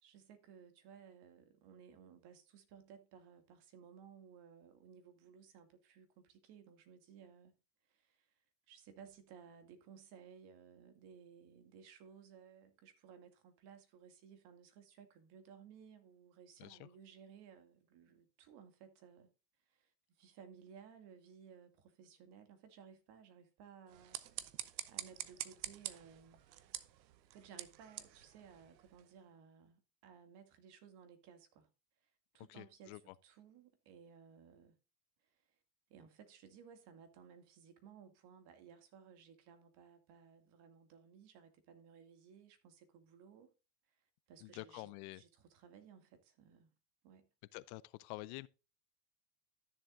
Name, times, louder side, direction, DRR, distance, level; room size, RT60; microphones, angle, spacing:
voice 1, 0.0-7.6 7.9-8.3 8.7-19.3 19.7-19.9 20.2-24.2 24.5-26.4 27.3-31.7 32.3-34.8 35.9-43.5 44.3-44.9 45.1-46.7 47.0-47.3, right 7 dB, 50° right, 2.2 m, -59 dB
sound 1, 23.9-29.1, right 13 dB, 90° right, 1.0 m, -47 dB
voice 2, 32.5-33.1 44.4-45.2 47.5-48.5, left 20 dB, 60° left, 0.6 m, -48 dB
12.5 x 7.4 x 2.5 m
supercardioid pair, 115°, 50 cm